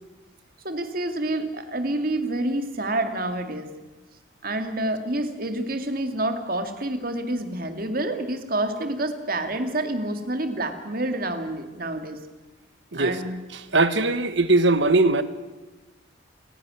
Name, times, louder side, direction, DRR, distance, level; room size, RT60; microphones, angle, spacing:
voice 1, 0.6-3.7 4.4-12.2 12.9-13.4, right 1 dB, 45° right, 2.2 m, -28 dB
voice 2, 13.7-15.2, right 2 dB, 65° right, 1.3 m, -20 dB
29.5 x 11.5 x 9.7 m
head